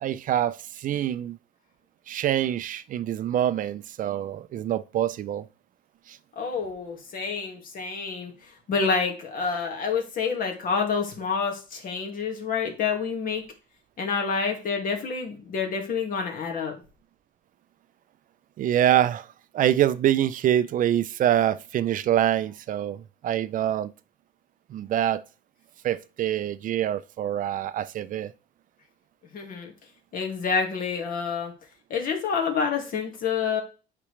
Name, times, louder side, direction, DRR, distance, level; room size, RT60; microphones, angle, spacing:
voice 1, 0.0-1.4 2.1-5.5 6.1-6.2 18.6-19.3 19.5-23.9 24.7-25.2 25.8-28.3, right 11 dB, 50° right, 0.5 m, -25 dB
voice 2, 6.4-13.4 14.0-16.8 29.3-29.7 30.1-31.5 31.9-33.6, left 5 dB, 55° left, 2.1 m, -28 dB
8.6 x 5.1 x 3.3 m
cardioid pair, 110°, 17 cm